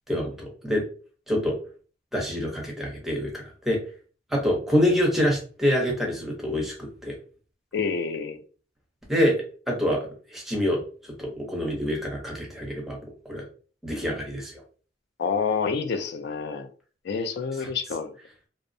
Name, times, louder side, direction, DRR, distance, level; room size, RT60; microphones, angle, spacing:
voice 1, 0.1-0.8 1.3-1.6 2.1-3.8 4.3-7.2 9.1-13.0 13.3-13.4 13.8-14.6 17.6-17.7, equal, ahead, 0.7 m, -26 dB
voice 2, 7.7-8.4 15.2-16.7 17.0-18.1, left 5 dB, 65° left, 0.4 m, -28 dB
2.5 x 2.0 x 2.6 m
head